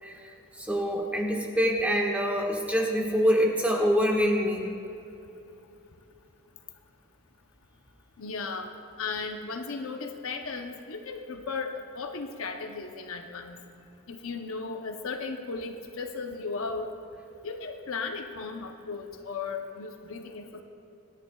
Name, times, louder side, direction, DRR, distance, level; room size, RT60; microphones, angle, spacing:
voice 1, 0.0-4.6, equal, 5° right, -1 dB, 1.5 m, -25 dB
voice 2, 8.2-8.7 9.0-13.6 14.1-16.9 17.4-20.6, left 4 dB, 65° left, 4 dB, 0.8 m, -36 dB
25.0 x 10.0 x 2.4 m, 2.8 s
head